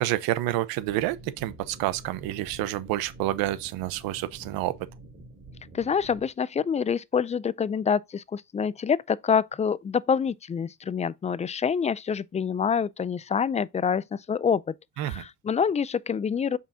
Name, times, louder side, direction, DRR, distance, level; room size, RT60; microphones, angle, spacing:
voice 1, 0.0-4.7 15.0-15.2, right 15 dB, 80° right, 0.9 m, -28 dB
sound 1, 0.8-6.3, right 2 dB, 30° right, 3.3 m, -47 dB
voice 2, 5.7-16.6, left 6 dB, 20° left, 0.4 m, -26 dB
7.2 x 5.6 x 2.7 m
cardioid pair, 105°, 35 cm